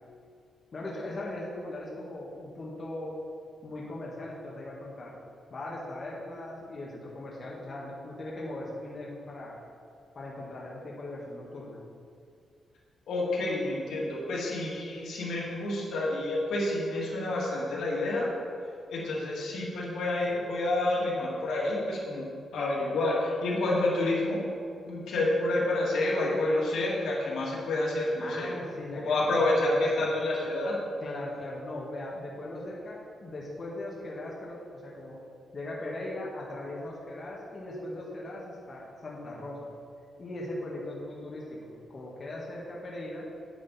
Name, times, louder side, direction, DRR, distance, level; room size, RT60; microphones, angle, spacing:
voice 1, 0.7-3.1 3.6-5.2 5.5-9.6 10.1-11.8 28.2-29.9 31.0-35.2 35.5-39.7 40.2-43.2, left 1 dB, 35° left, -4 dB, 1.5 m, -39 dB
voice 2, 13.1-18.3 18.9-22.2 22.5-24.4 24.9-28.5 29.0-30.8, left 2 dB, 85° left, -5 dB, 2.5 m, -28 dB
9.6 x 8.7 x 4.2 m, 2.3 s
wide cardioid pair, 150°, 0 cm